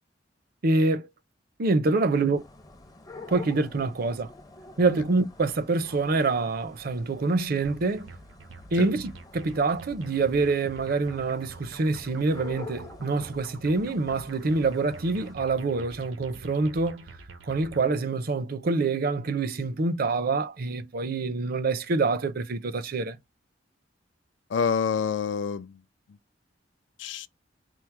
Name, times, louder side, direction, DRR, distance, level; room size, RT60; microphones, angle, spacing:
voice 1, 0.6-1.1 1.6-2.4 3.3-4.3 4.8-8.1 8.7-17.1 17.4-23.2, right 3 dB, 55° right, 0.6 m, -26 dB
sound 1, 2.4-15.3, left 3 dB, 20° left, 0.6 m, -48 dB
sound 2, 7.6-18.0, right 3 dB, 90° right, 0.8 m, -46 dB
voice 2, 24.5-25.8 26.1-26.2 27.0-27.3, left 6 dB, 75° left, 0.4 m, -27 dB
4.5 x 2.0 x 4.5 m
head